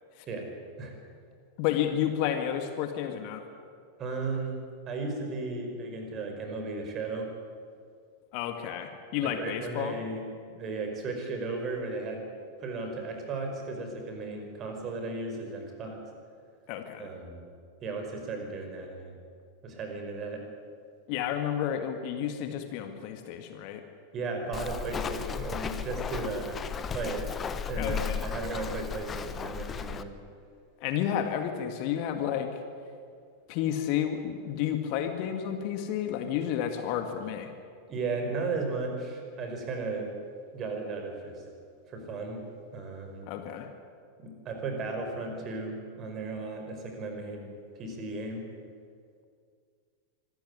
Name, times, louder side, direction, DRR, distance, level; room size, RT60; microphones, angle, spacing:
voice 1, 1.6-3.4 8.3-10.0 16.7-17.0 21.1-23.8 27.7-28.2 30.8-32.5 33.5-37.5 43.3-43.7, left 10 dB, 45° left, 6 dB, 2.0 m, -31 dB
voice 2, 4.0-4.6 4.9-7.3 9.2-12.2 12.6-16.0 17.0-17.4 17.8-19.2 19.6-20.4 24.1-26.7 26.9-27.2 27.7-30.1 37.9-40.1 40.5-41.4 41.9-42.4 42.7-43.3 44.2-47.5 47.8-48.5, right 3 dB, 30° right, 3 dB, 5.3 m, -35 dB
Walk footsteps, 24.5-30.0, left 7 dB, 20° left, 1.1 m, -35 dB
25.0 x 14.0 x 9.8 m, 2.2 s
figure-of-eight pair, 90°, 0 cm